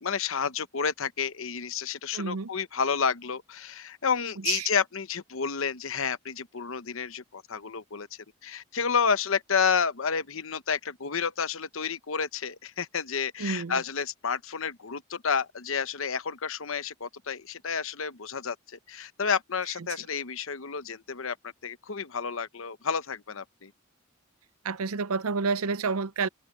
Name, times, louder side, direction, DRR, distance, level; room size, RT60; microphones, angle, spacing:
voice 1, 0.0-23.7, left 6 dB, 70° left, 0.9 m, -30 dB
voice 2, 2.1-2.5 4.5-4.7 13.4-13.8 24.6-26.3, right 4 dB, 90° right, 0.6 m, -29 dB
head